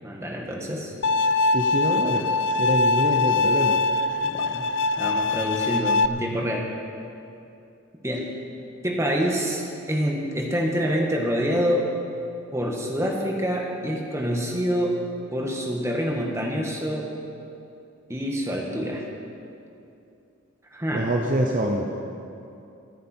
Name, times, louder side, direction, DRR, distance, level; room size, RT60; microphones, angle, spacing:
voice 1, 0.0-0.9 4.2-4.7 5.0-6.7 8.0-8.3 8.8-11.8 12.5-15.0 15.3-17.1 18.1-19.0 20.7-21.1, equal, 15° right, -1 dB, 1.7 m, -26 dB
Bowed string instrument, 1.0-6.1, left 3 dB, 60° left, 0.4 m, -22 dB
voice 2, 1.5-2.3 2.6-3.8 20.9-22.1, right 1 dB, 40° right, 1 dB, 0.9 m, -25 dB
25.0 x 9.2 x 4.5 m, 2.7 s
head